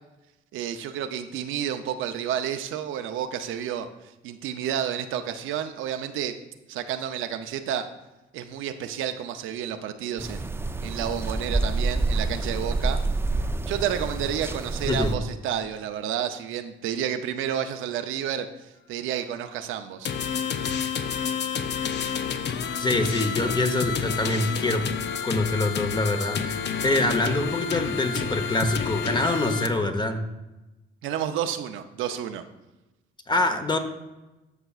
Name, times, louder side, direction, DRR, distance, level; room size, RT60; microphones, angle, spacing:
voice 1, 0.5-3.9 4.2-6.3 6.7-7.9 8.3-10.5 10.8-13.0 13.7-20.1 31.0-32.4, right 9 dB, 90° right, 8 dB, 0.6 m, -30 dB
sound 1, 10.2-15.2, right 2 dB, 10° right, 0.4 m, -28 dB
sound 2, 20.0-29.7, left 7 dB, 60° left, 0.6 m, -29 dB
voice 2, 22.5-24.8 25.2-30.2 33.3-33.8, left 2 dB, 20° left, 7 dB, 1.0 m, -25 dB
12.5 x 5.7 x 2.4 m, 1.0 s
cardioid pair, 90°, 20 cm